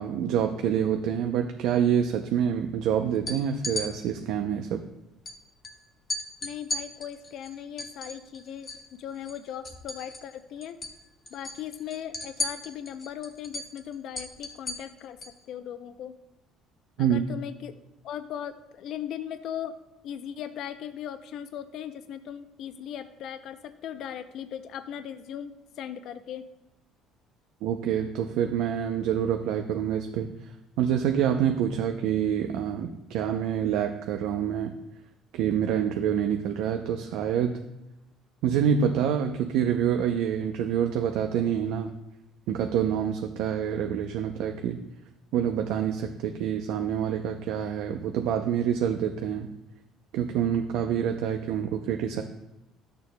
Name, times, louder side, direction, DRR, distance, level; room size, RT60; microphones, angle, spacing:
voice 1, 0.0-4.8 17.0-17.2 27.6-30.5 30.8-34.7 35.3-37.7 38.4-41.9 42.5-44.8 45.3-49.5 50.1-52.2, right 8 dB, 80° right, 5 dB, 0.5 m, -27 dB
sound 1, 3.1-3.9 5.2-5.3 5.6-5.7 6.1-8.9 9.2-10.4 10.6-11.0 11.3-15.4, left 2 dB, 30° left, 1.3 m, -35 dB
voice 2, 6.4-10.8 11.3-15.2 15.5-16.2 17.0-17.8 18.0-19.8 20.0-26.5, left 9 dB, 65° left, 10 dB, 0.5 m, -38 dB
12.5 x 6.7 x 2.2 m, 0.95 s
cardioid pair, 105°, 0 cm